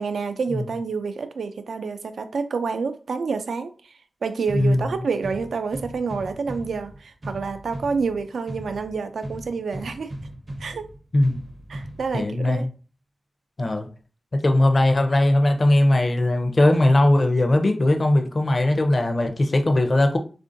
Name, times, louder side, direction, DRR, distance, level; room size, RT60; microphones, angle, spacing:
voice 1, 0.0-3.9 4.2-10.1 10.6-10.9 11.7-12.7, right 5 dB, 85° right, 0.3 m, -28 dB
voice 2, 4.5-4.8 11.1-11.4 12.1-12.7 13.6-13.9 14.3-20.2, left 1 dB, 40° left, 0.5 m, -19 dB
sound 1, 4.5-12.5, right 1 dB, 40° right, 0.5 m, -38 dB
3.6 x 2.5 x 2.5 m
wide cardioid pair, 95°, 0 cm